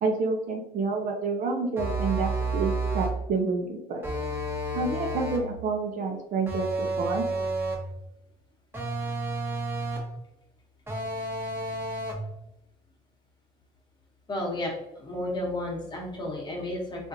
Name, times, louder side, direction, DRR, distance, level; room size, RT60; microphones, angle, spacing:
voice 1, 0.0-4.1 4.7-7.3, right 4 dB, 55° right, 3 dB, 0.6 m, -29 dB
sound 1, 1.8-3.2 4.0-5.5 6.5-7.9 8.7-10.2 10.9-12.3, right 2 dB, 15° right, 1.0 m, -30 dB
voice 2, 14.3-17.1, left 1 dB, 25° left, -2 dB, 1.1 m, -32 dB
3.6 x 2.5 x 2.7 m, 0.86 s
cardioid pair, 110°, 17 cm